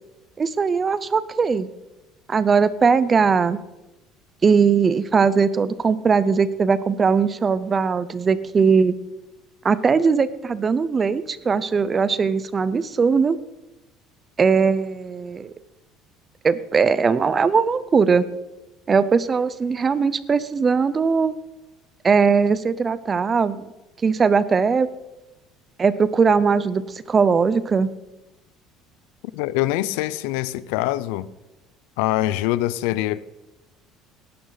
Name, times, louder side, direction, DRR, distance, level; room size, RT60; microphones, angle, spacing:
voice 1, 0.4-1.7 2.3-3.6 4.4-8.9 9.6-13.4 14.4-15.5 16.4-18.3 18.9-21.3 22.0-23.7 24.0-24.9 25.8-27.9, right 5 dB, 25° right, 0.6 m, -19 dB
voice 2, 29.3-31.3 32.0-33.2, left 15 dB, 90° left, 0.5 m, -24 dB
18.5 x 11.5 x 4.0 m
cardioid pair, 150°, 0 cm